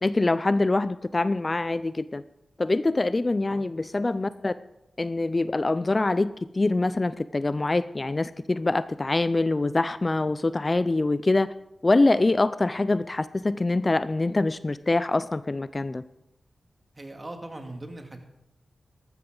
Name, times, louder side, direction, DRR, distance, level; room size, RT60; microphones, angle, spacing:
voice 1, 0.0-2.2 2.6-4.5 5.0-11.5 11.8-16.0, left 2 dB, 35° left, 15 dB, 0.4 m, -24 dB
voice 2, 16.9-18.2, right 1 dB, 35° right, 4 dB, 2.3 m, -40 dB
14.0 x 13.0 x 3.9 m, 0.86 s
cardioid pair, 50°, 0 cm